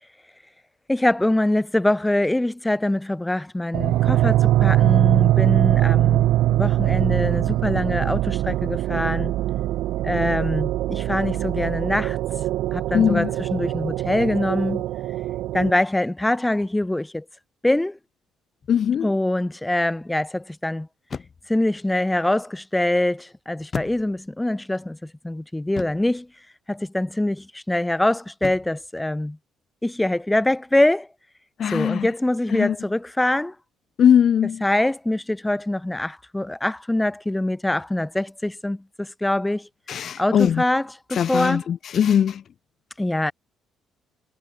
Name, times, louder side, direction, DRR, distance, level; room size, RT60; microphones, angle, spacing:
voice 1, 0.9-9.3 10.0-12.2 12.7-14.8 15.5-17.2 17.6-18.0 19.0-20.9 21.5-26.3 26.7-29.4 29.8-31.1 31.7-33.5 34.6-39.7 40.2-41.7 43.0-43.3, left 1 dB, 5° left, 1.6 m, -24 dB
sound 1, 3.7-15.7, right 14 dB, 75° right, 1.3 m, -22 dB
voice 2, 12.9-13.3 18.7-19.1 31.6-32.1 32.5-32.7 34.0-34.6 39.9-40.6 41.1-42.4, left 8 dB, 45° left, 0.4 m, -20 dB
sound 2, 18.6-19.0 21.0-21.6 23.7-24.4 25.8-26.2 28.4-28.9, left 5 dB, 30° left, 4.0 m, -35 dB
cardioid pair, 140°, 0 cm